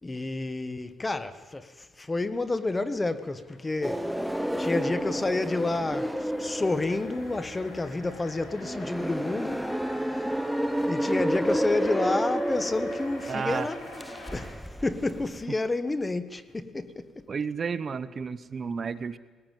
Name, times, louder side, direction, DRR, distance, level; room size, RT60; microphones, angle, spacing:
voice 1, 0.0-4.1 4.6-9.7 10.2-10.3 10.9-14.0 14.3-14.6 14.8-17.3, left 2 dB, 20° left, 1.3 m, -30 dB
sound 1, 3.1-15.5, left 2 dB, 45° left, 6.3 m, -61 dB
sound 2, 3.8-15.4, equal, ahead, 0.9 m, -31 dB
sound 3, 5.6-14.5, left 3 dB, 75° left, 8.0 m, -47 dB
voice 2, 13.3-13.7 17.3-19.2, right 5 dB, 45° right, 0.9 m, -32 dB
20.0 x 18.5 x 9.3 m
cardioid pair, 90°, 0 cm